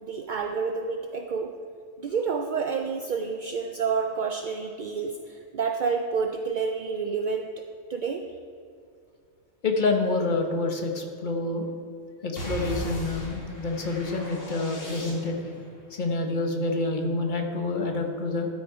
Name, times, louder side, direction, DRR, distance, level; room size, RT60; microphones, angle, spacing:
voice 1, 0.0-1.6 2.0-7.5 7.9-8.2, right 5 dB, 60° right, 4 dB, 0.5 m, -29 dB
voice 2, 9.6-11.7 12.2-15.4 15.9-18.5, left 3 dB, 40° left, 3 dB, 1.2 m, -27 dB
sound 1, 12.4-15.6, equal, 70° left, 2.6 m, -37 dB
12.5 x 6.3 x 4.8 m, 2.4 s
omnidirectional pair, 1.3 m